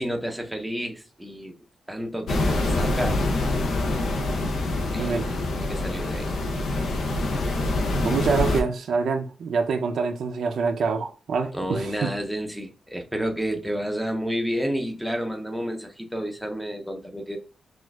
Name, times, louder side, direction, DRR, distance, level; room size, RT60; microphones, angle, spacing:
voice 1, 0.0-1.6 1.9-3.2 4.9-5.3 5.6-6.3 11.5-17.4, equal, ahead, 0.5 m, -30 dB
sound 1, 2.3-8.6, left 2 dB, 80° left, 0.6 m, -25 dB
voice 2, 8.0-12.1, right 5 dB, 70° right, 0.5 m, -26 dB
6.1 x 2.4 x 2.3 m
wide cardioid pair, 155°, 0 cm